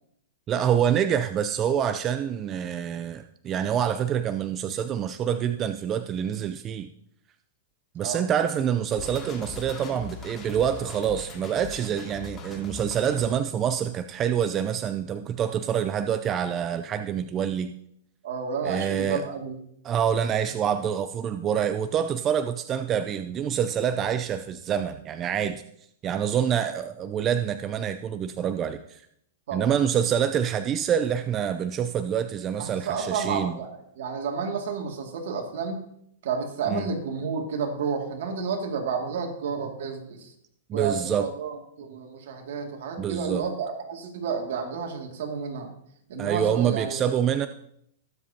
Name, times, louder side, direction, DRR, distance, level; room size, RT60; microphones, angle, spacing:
voice 1, 0.5-6.9 7.9-17.7 18.6-19.2 19.8-25.6 26.0-29.0 29.5-33.6 36.7-36.9 40.7-41.3 43.0-43.4 46.2-47.5, right 9 dB, 30° right, 10 dB, 0.5 m, -26 dB
sound 1, 9.0-13.3, left 4 dB, 25° left, 2.3 m, -40 dB
voice 2, 18.2-19.5 29.5-29.7 32.6-35.8 36.2-40.3 40.7-45.7 46.1-47.1, right 5 dB, 70° right, 3 dB, 2.2 m, -31 dB
19.5 x 7.5 x 2.8 m, 0.72 s
hypercardioid pair, 130°, 0 cm